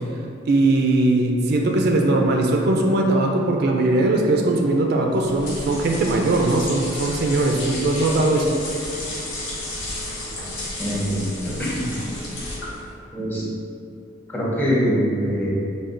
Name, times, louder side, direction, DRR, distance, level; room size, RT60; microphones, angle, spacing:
voice 1, 0.5-8.6, right 2 dB, 55° right, 2 dB, 0.3 m, -20 dB
sound 1, 5.1-12.9, left 1 dB, 70° left, 1.0 m, -32 dB
voice 2, 10.8-12.1 13.1-13.4 14.3-15.5, equal, 10° left, -6 dB, 0.7 m, -23 dB
6.5 x 2.2 x 2.5 m, 2.5 s
head